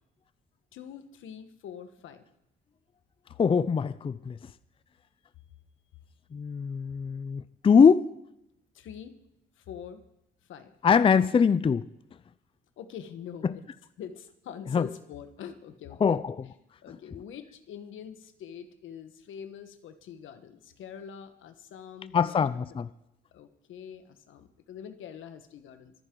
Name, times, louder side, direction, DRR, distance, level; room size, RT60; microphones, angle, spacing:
voice 1, 0.7-2.2 8.7-9.2 9.6-10.0 10.5-10.7 12.8-13.6 14.0-16.2 16.8-22.4 23.3-25.9, left 8 dB, 80° left, 1.4 m, -44 dB
voice 2, 3.4-4.4 6.3-8.1 10.8-11.8 13.4-13.6 14.7-14.9 16.0-16.5 22.1-22.9, left 6 dB, 25° left, 0.5 m, -23 dB
23.5 x 10.5 x 3.9 m
cardioid pair, 90°, 20 cm